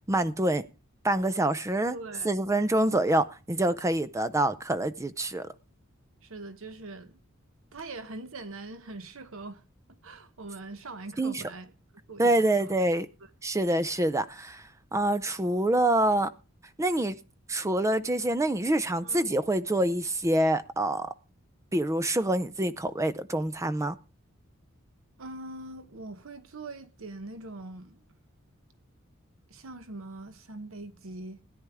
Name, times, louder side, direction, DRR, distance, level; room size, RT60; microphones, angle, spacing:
voice 1, 0.1-0.6 1.0-2.0 2.2-5.5 11.2-11.4 12.2-13.1 13.4-14.6 14.9-16.3 16.8-17.2 17.5-21.1 21.7-24.0, right 1 dB, 15° right, 0.5 m, -26 dB
voice 2, 1.9-2.3 6.2-7.2 7.7-9.6 10.0-11.7 12.1-12.7 13.2-13.3 19.0-19.3 25.2-28.0 29.5-31.4, right 2 dB, 75° right, 0.9 m, -42 dB
16.5 x 9.6 x 3.5 m
head